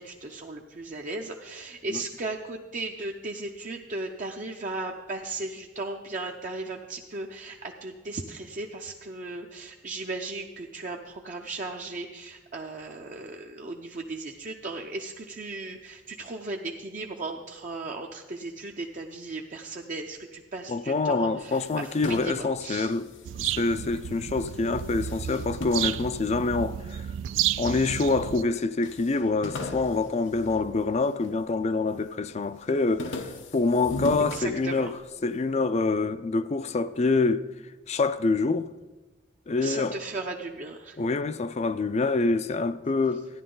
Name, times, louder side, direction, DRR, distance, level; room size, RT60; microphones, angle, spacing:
voice 1, 0.0-22.9 25.2-25.4 34.3-34.9 39.6-41.0, right 2 dB, 45° right, 0.6 m, -36 dB
voice 2, 20.7-23.1 23.4-27.1 27.6-34.9 35.2-37.5 37.9-38.7 39.5-40.0 41.0-43.3, left 3 dB, 35° left, 0.4 m, -26 dB
sound 1, 21.4-24.1 24.4-26.9 27.5-28.2 28.5-28.6 28.8-31.4 31.8-32.2 32.6-35.2, left 2 dB, 90° left, 1.0 m, -38 dB
sound 2, 23.2-28.4, right 11 dB, 85° right, 0.3 m, -32 dB
14.0 x 10.0 x 3.8 m
head